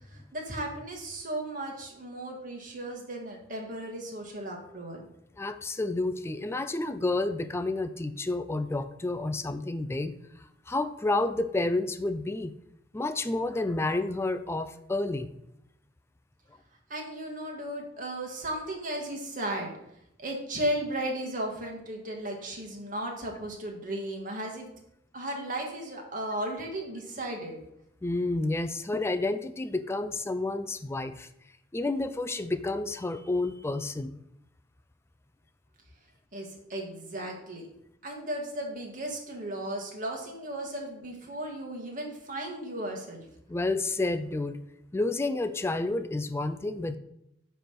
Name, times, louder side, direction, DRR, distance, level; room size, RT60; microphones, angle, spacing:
voice 1, 0.1-5.0 16.9-19.7 20.2-24.7 25.1-27.6 36.3-37.7 38.0-43.3, right 1 dB, 45° right, 1 dB, 1.7 m, -35 dB
voice 2, 5.4-10.1 10.7-12.5 12.9-15.3 28.0-31.3 31.7-34.2 43.5-44.6 44.9-47.0, left 2 dB, 15° left, 10 dB, 0.4 m, -30 dB
9.3 x 3.4 x 5.9 m, 0.79 s
head